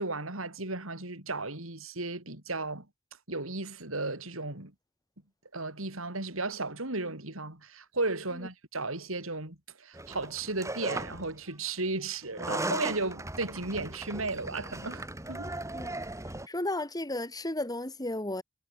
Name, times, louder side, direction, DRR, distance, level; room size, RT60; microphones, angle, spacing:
voice 1, 0.0-2.9 3.3-4.7 5.5-15.5, right 3 dB, 80° right, 5.4 m, -35 dB
sound 1, 9.9-11.3 12.2-16.5, right 2 dB, 15° right, 4.0 m, -37 dB
voice 2, 16.5-18.4, left 1 dB, 20° left, 3.1 m, -33 dB
head